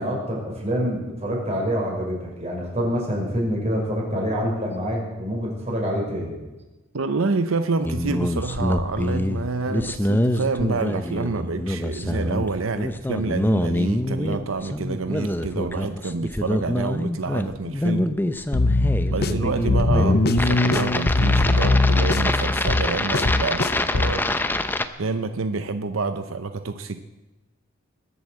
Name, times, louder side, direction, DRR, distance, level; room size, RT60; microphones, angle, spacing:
voice 1, 0.0-6.3 19.2-19.5 19.9-20.2, equal, 35° right, -2 dB, 5.6 m, -26 dB
voice 2, 6.9-18.1 19.1-24.2 25.0-27.0, right 4 dB, 90° right, 9 dB, 0.7 m, -28 dB
sound 1, 7.8-24.9, left 1 dB, 10° left, 0.7 m, -25 dB
sound 2, 18.5-24.2, left 2 dB, 50° left, 0.7 m, -21 dB
21.0 x 8.1 x 7.6 m, 1.1 s
head